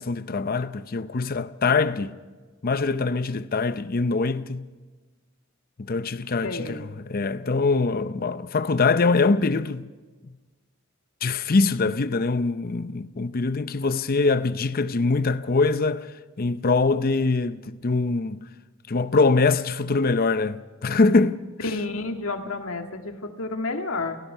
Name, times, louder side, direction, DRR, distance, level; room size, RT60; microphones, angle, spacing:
voice 1, 0.0-2.1 2.6-4.7 5.8-9.9 11.2-16.1 16.4-18.4 18.9-21.4, left 3 dB, 45° left, 0.6 m, -23 dB
voice 2, 6.4-6.9 21.6-24.2, left 3 dB, 85° left, 1.9 m, -30 dB
29.5 x 16.0 x 5.5 m
head